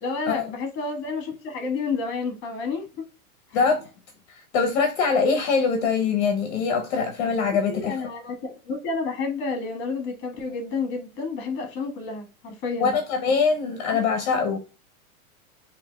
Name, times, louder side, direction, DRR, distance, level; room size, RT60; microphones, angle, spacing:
voice 1, 0.0-2.9 3.5-3.6 7.7-12.9 13.9-14.0, left 4 dB, 25° left, 1.5 m, -30 dB
voice 2, 3.5-3.9 4.5-7.9 12.8-14.6, left 5 dB, 50° left, 0.9 m, -23 dB
5.7 x 2.8 x 2.2 m
supercardioid pair, 155°, 43 cm